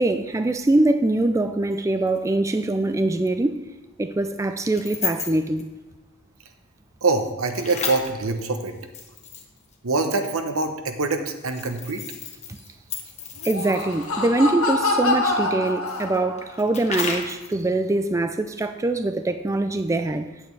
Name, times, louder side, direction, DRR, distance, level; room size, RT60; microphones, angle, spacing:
voice 1, 0.0-3.7 4.0-5.7 12.5-12.6 13.4-20.3, right 2 dB, 15° right, 8 dB, 0.3 m, -23 dB
sound 1, 2.2-2.3 4.7-5.6 7.5-9.7 11.3-14.1 15.7-17.6, left 6 dB, 30° left, 1.1 m, -33 dB
voice 2, 7.0-8.7 9.8-12.0, right 3 dB, 80° right, 6 dB, 1.0 m, -24 dB
Laughter, 13.4-16.5, left 2 dB, 75° left, 1.5 m, -25 dB
8.6 x 8.1 x 4.6 m, 1.2 s
head